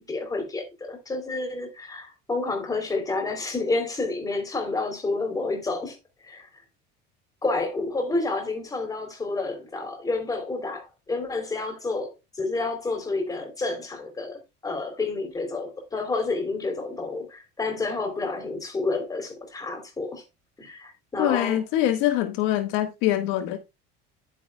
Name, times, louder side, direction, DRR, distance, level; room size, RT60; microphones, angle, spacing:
voice 1, 0.0-6.0 6.2-6.5 7.4-20.2 20.6-21.6, left 3 dB, 15° left, 3.3 m, -29 dB
voice 2, 21.2-23.6, left 13 dB, 75° left, 1.5 m, -24 dB
10.5 x 9.2 x 2.3 m
cardioid pair, 125°, 21 cm